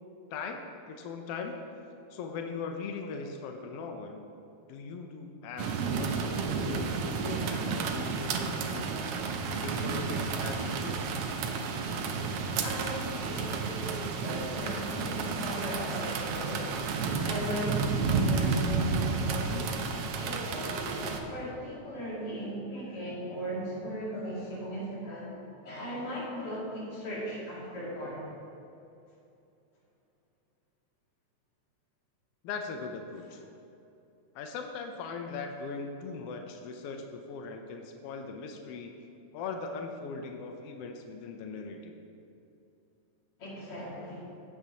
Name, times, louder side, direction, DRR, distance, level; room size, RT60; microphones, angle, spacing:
voice 1, 0.3-1.6 2.1-4.3 4.7-8.9 9.5-11.0 32.4-33.4 34.3-38.9 39.3-41.9, left 4 dB, 80° left, 4 dB, 1.3 m, -40 dB
sound 1, 5.6-21.2, right 5 dB, 75° right, 1.3 m, -31 dB
voice 2, 12.6-16.8 17.2-19.8 20.2-28.2 43.4-44.2, equal, 50° left, -6 dB, 3.2 m, -37 dB
15.0 x 8.5 x 2.8 m, 2.7 s
omnidirectional pair, 3.4 m